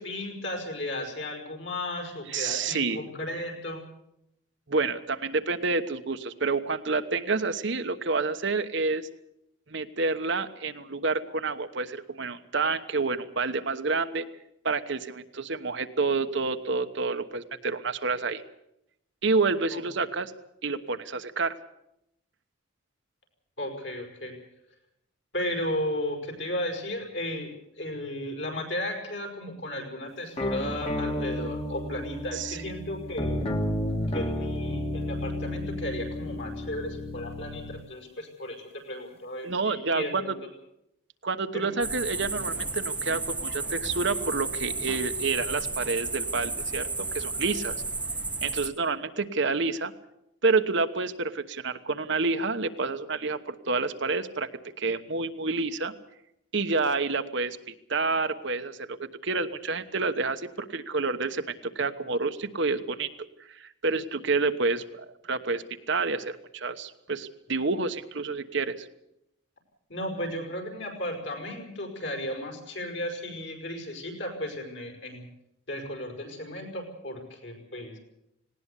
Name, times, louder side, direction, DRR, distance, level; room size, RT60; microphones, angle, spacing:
voice 1, 0.0-3.8 19.7-19.8 23.6-24.4 25.3-27.5 27.8-33.4 34.1-40.3 41.5-41.7 69.9-75.2 75.7-78.0, left 1 dB, 60° left, 3 dB, 5.5 m, -34 dB
voice 2, 2.3-3.0 4.7-9.1 9.7-14.3 14.6-18.4 19.2-20.3 20.6-21.5 32.3-32.6 39.4-40.3 41.2-47.8 48.4-49.9 50.4-54.5 54.8-55.9 56.5-57.6 57.9-63.1 63.5-68.9, right 4 dB, 60° right, 8 dB, 1.1 m, -29 dB
sound 1, 30.4-37.8, left 1 dB, 30° left, 1.8 m, -32 dB
sound 2, 41.8-48.7, right 3 dB, 5° right, 1.1 m, -32 dB
19.0 x 18.0 x 8.3 m, 0.81 s
head